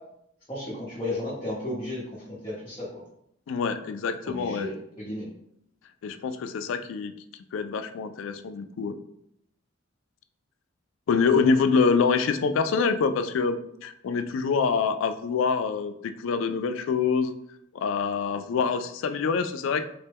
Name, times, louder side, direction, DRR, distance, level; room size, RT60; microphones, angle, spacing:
voice 1, 0.5-2.0 2.4-2.9 4.3-5.3, left 1 dB, 20° left, -9 dB, 0.9 m, -33 dB
voice 2, 3.5-4.7 6.0-7.1 7.5-9.0 11.1-17.3 17.7-19.9, left 5 dB, 75° left, 9 dB, 0.3 m, -25 dB
4.2 x 2.1 x 3.4 m, 0.74 s
head